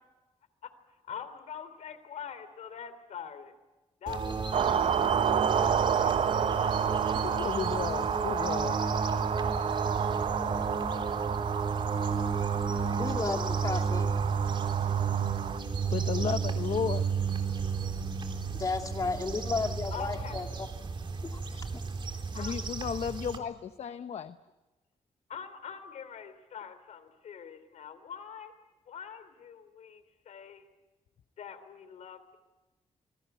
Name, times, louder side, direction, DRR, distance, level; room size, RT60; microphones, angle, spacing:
voice 1, 1.1-3.5 4.0-5.2 5.5-7.4 16.3-16.4 19.9-20.4 22.3-22.6 25.3-28.5 28.9-30.6 31.4-32.4, left 7 dB, 85° left, 12 dB, 3.2 m, -44 dB
sound 1, 4.1-23.4, right 5 dB, 45° right, 3.4 m, -32 dB
sound 2, 4.5-15.6, right 8 dB, 65° right, 0.9 m, -30 dB
voice 2, 7.2-8.8 15.9-17.1 22.3-24.4, left 7 dB, 65° left, 11 dB, 0.9 m, -34 dB
voice 3, 13.0-14.0 18.6-20.7 21.2-21.8, left 3 dB, 30° left, 4 dB, 2.3 m, -33 dB
27.5 x 22.0 x 9.2 m, 1.1 s
wide cardioid pair, 130°, 12 cm